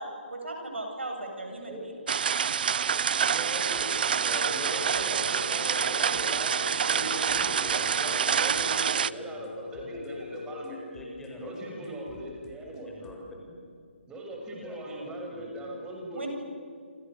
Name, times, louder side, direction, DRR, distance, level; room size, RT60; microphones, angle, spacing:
voice 1, 0.0-1.9 16.1-16.3, right 2 dB, 80° right, 2 dB, 7.8 m, -38 dB
sound 1, 2.1-9.1, right 7 dB, 55° right, 0.7 m, -27 dB
voice 2, 3.3-10.8 11.4-12.9 14.1-16.3, right 1 dB, 10° right, -1 dB, 6.7 m, -39 dB
sound 2, 3.7-4.1 4.3-4.7 4.9-5.3 5.5-5.9 6.1-6.5 6.7-8.9 9.1-9.5 9.7-10.1 10.3-10.7 10.9-11.3 11.5-13.2, left 4 dB, 30° left, 4.7 m, -54 dB
Wind instrument woodwind instrument, 4.2-11.0, left 3 dB, 55° left, 1.9 m, -41 dB
voice 3, 8.0-8.7 8.9-10.2 10.9-11.5 11.8-11.9 12.6-13.6 14.6-14.8 15.2-15.8, left 1 dB, 5° left, -2 dB, 5.6 m, -47 dB
28.5 x 27.5 x 7.0 m, 2.2 s
figure-of-eight pair, 140°, 6 cm